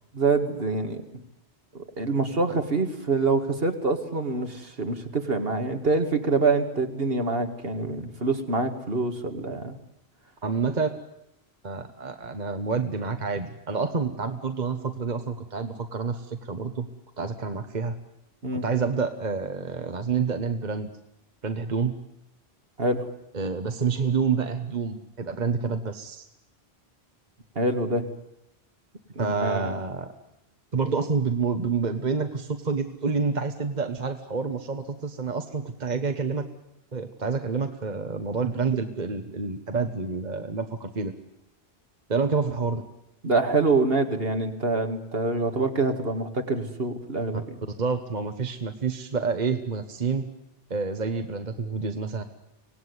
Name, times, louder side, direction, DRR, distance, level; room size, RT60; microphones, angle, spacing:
voice 1, 0.1-1.0 1.7-9.8 18.4-18.6 22.8-23.1 27.6-28.0 29.1-29.7 43.2-47.6, right 3 dB, 65° right, 6 dB, 2.4 m, -25 dB
voice 2, 10.4-10.9 11.6-16.9 17.2-17.9 18.5-20.9 21.4-22.0 23.3-26.2 29.2-30.1 30.7-36.4 36.9-41.1 42.1-42.9 47.8-50.3 50.7-52.2, right 5 dB, 45° right, 7 dB, 1.3 m, -28 dB
25.0 x 18.5 x 9.7 m, 0.88 s
omnidirectional pair, 1.1 m